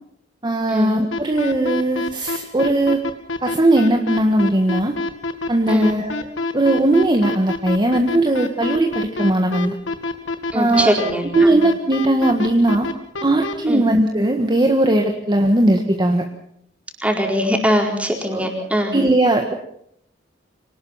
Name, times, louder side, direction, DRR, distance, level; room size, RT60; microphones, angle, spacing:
voice 1, 0.4-3.0 3.4-5.0 5.5-6.2 6.5-9.7 10.5-10.9 11.3-12.9 13.2-16.2 18.3-18.5 18.9-19.5, right 1 dB, 25° right, 3 dB, 1.6 m, -18 dB
sound 1, 1.1-13.5, left 2 dB, 85° left, 2.3 m, -25 dB
voice 2, 10.5-11.6 13.7-13.9 17.0-19.0, equal, 5° right, 1 dB, 4.5 m, -21 dB
25.5 x 19.0 x 5.8 m, 0.72 s
head